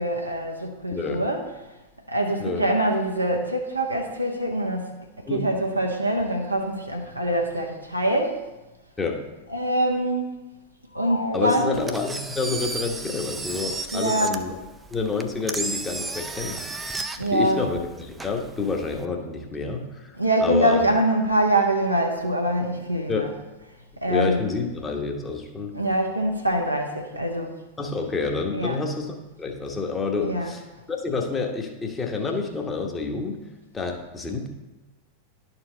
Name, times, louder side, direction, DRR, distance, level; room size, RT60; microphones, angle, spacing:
voice 1, 0.0-1.5 2.1-4.9 5.2-8.4 9.5-10.3 10.9-11.9 13.9-14.4 17.2-17.6 20.2-23.3 24.0-24.4 25.7-27.6 28.5-28.8 30.2-30.5, right 1 dB, 90° right, 0 dB, 0.7 m, -24 dB
voice 2, 0.9-1.2 2.4-2.6 5.3-5.5 9.0-9.2 11.3-14.5 14.9-16.6 17.3-20.8 23.1-23.3 24.1-25.7 27.8-30.6 30.9-33.4 33.7-34.5, left 4 dB, 15° left, 2 dB, 1.0 m, -28 dB
sound 1, 10.9-12.4, left 2 dB, 80° left, 0.5 m, -36 dB
Engine, 11.7-19.1, right 3 dB, 10° right, 0.4 m, -34 dB
11.0 x 4.5 x 3.8 m, 1.0 s
figure-of-eight pair, 90°, 0 cm